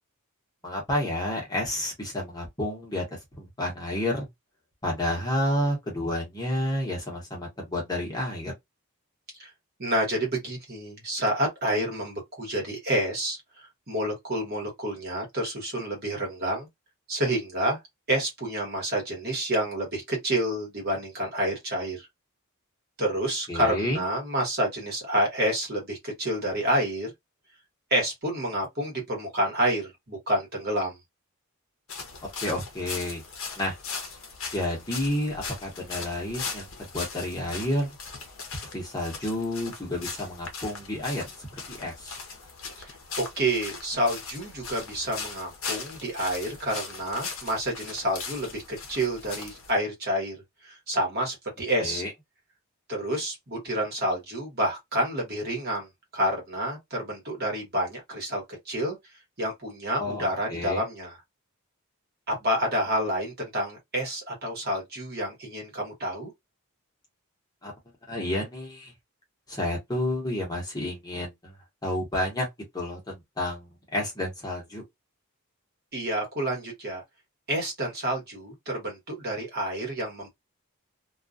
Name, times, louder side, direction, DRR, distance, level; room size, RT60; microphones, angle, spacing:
voice 1, 0.6-3.0 3.4-4.2 4.8-8.5 23.5-24.0 32.4-33.2 33.6-33.8 34.5-37.9 38.7-41.2 41.7-42.2 51.8-52.1 60.0-60.8 67.6-67.7 68.1-68.9 69.5-71.5 71.8-72.5 72.7-74.8, left 1 dB, 15° left, 0.8 m, -30 dB
voice 2, 9.8-13.4 13.9-16.7 17.1-17.8 18.1-22.1 23.0-27.1 27.9-31.0 42.8-50.4 50.6-52.0 52.9-59.0 59.4-61.2 62.3-66.3 75.9-77.0 77.5-80.3, right 1 dB, 45° right, 1.1 m, -29 dB
sound 1, 31.9-49.7, left 5 dB, 60° left, 0.6 m, -39 dB
2.3 x 2.2 x 2.4 m
head